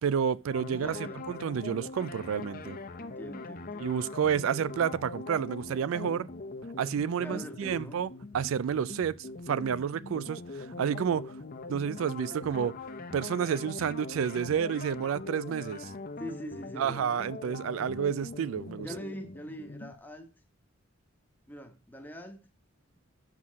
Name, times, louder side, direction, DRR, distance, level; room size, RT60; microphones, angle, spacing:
voice 1, 0.0-1.0 1.3-2.8 3.8-6.3 6.8-8.1 8.3-9.2 9.5-11.4 11.7-12.7 13.1-15.9 16.8-18.9, right 7 dB, 75° right, 0.3 m, -30 dB
sound 1, 0.5-19.9, left 3 dB, 45° left, 0.8 m, -42 dB
voice 2, 0.7-1.3 3.0-4.0 7.2-8.0 16.2-17.0 18.8-20.3 21.5-22.4, equal, 10° left, 1.1 m, -42 dB
7.6 x 5.7 x 6.2 m
head